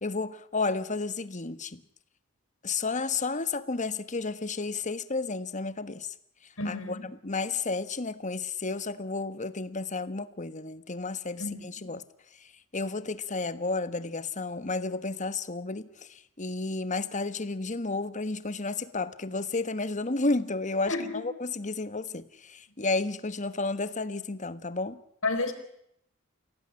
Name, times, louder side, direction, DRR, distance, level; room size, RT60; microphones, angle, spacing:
voice 1, 0.0-1.8 2.6-6.1 6.6-7.0 7.2-12.0 12.4-25.0, left 3 dB, 35° left, 1.4 m, -32 dB
voice 2, 6.6-7.0 11.4-11.9 20.9-21.2 25.2-25.5, left 2 dB, 70° left, 4.7 m, -31 dB
29.0 x 17.0 x 9.9 m
head